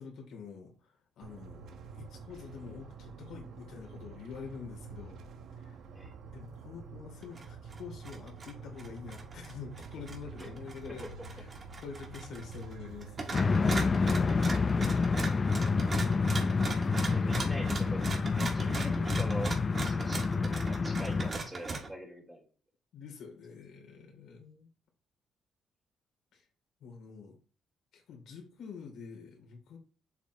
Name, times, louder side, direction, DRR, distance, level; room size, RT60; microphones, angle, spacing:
voice 1, 0.0-5.2 5.6-6.1 6.3-11.5 11.8-13.4 22.9-24.7 26.3-26.4 26.8-27.4 27.9-29.8, left 5 dB, 75° left, 1 dB, 3.2 m, -47 dB
sound 1, 1.2-14.9, right 4 dB, 75° right, 1.4 m, -48 dB
sound 2, 7.2-7.5 7.7-8.5 8.8-12.7 13.0-21.9, right 3 dB, 35° right, 2.1 m, -39 dB
sound 3, 13.3-21.3, left 4 dB, 35° left, 0.4 m, -28 dB
voice 2, 16.9-18.0 18.4-22.4, right 1 dB, 10° right, -1 dB, 3.7 m, -43 dB
7.5 x 7.1 x 3.1 m, 0.36 s
cardioid pair, 90°, 0 cm